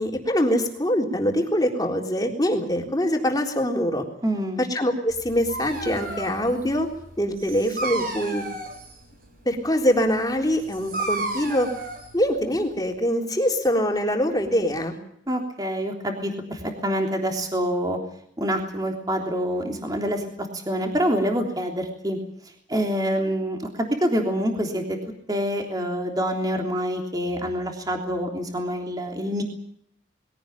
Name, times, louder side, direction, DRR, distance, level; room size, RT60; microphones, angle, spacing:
voice 1, 0.0-4.0 4.6-6.9 7.2-8.5 9.5-11.7 12.1-15.0, equal, 20° left, 2 dB, 3.7 m, -24 dB
voice 2, 4.2-4.6 15.3-18.0 18.4-22.2 22.4-25.0 25.3-29.4, equal, 20° right, 3 dB, 3.3 m, -26 dB
Dog, 5.1-12.9, right 2 dB, 50° right, 7.8 m, -34 dB
22.0 x 17.0 x 9.0 m, 0.69 s
head